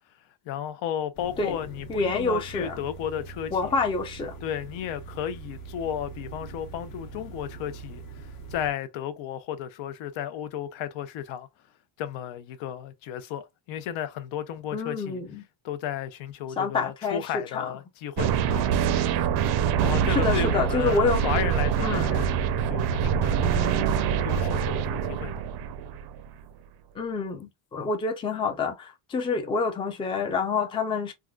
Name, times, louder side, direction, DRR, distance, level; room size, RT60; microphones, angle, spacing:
voice 1, 0.5-3.7 4.4-11.5 12.0-15.2 15.6-18.7 19.8-22.3 22.7-25.3, left 9 dB, 70° left, 0.7 m, -34 dB
sound 1, 1.1-8.7, right 4 dB, 45° left, 0.9 m, -42 dB
voice 2, 1.9-2.8 3.5-4.4 14.7-15.4 16.6-17.7 20.1-21.3 21.8-22.2 27.0-31.1, left 4 dB, 10° left, 0.4 m, -27 dB
sound 2, 18.2-26.3, right 8 dB, 55° right, 0.5 m, -25 dB
3.6 x 2.3 x 2.3 m
cardioid pair, 160°, 48 cm